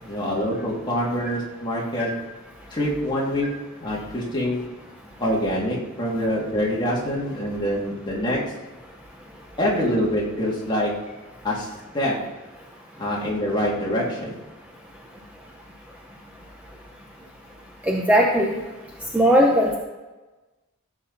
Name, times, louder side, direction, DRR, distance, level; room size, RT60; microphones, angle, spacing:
voice 1, 0.0-2.1 2.7-3.5 3.8-4.6 5.2-8.4 9.6-10.9 11.4-12.1 13.0-14.4, equal, 20° left, -5 dB, 2.8 m, -25 dB
voice 2, 17.8-18.6 19.1-19.8, equal, 5° right, -1 dB, 1.0 m, -18 dB
15.5 x 7.7 x 4.2 m, 1.2 s
head